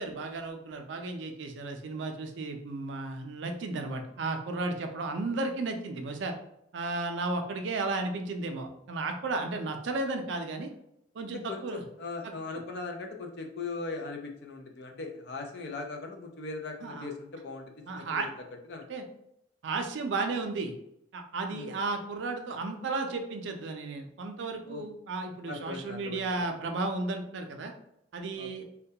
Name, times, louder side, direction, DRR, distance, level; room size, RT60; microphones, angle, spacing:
voice 1, 0.0-6.3 6.7-10.7 11.1-11.8 12.5-12.6 16.8-17.1 17.9-18.3 18.9-19.0 19.6-20.7 21.1-27.7 28.1-28.6, right 3 dB, 75° right, 5 dB, 0.4 m, -34 dB
voice 2, 11.5-18.2 18.7-18.9 21.5-21.7 24.6-24.8 25.5-26.7 28.3-28.6, left 3 dB, 60° left, 4 dB, 0.4 m, -39 dB
2.2 x 2.2 x 2.7 m, 0.76 s
head